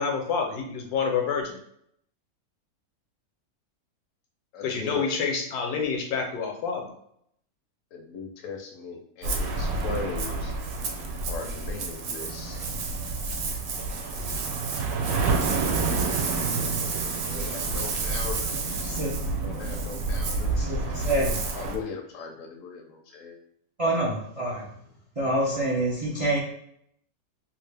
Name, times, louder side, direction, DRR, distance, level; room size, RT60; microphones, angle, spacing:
voice 1, 0.0-1.6 4.6-6.9, left 5 dB, 85° left, 2 dB, 1.2 m, -28 dB
voice 2, 4.5-5.1 7.9-10.5 11.3-12.6 17.1-18.9 19.4-20.9 21.5-23.4, left 5 dB, 70° left, 1 dB, 0.8 m, -38 dB
Ocean, 9.2-21.8, right 3 dB, 70° right, 1.0 m, -28 dB
voice 3, 18.6-19.2 20.5-21.4 23.8-24.7 25.2-26.4, right 1 dB, 55° right, -5 dB, 0.4 m, -27 dB
2.8 x 2.4 x 3.3 m, 0.70 s
omnidirectional pair, 1.6 m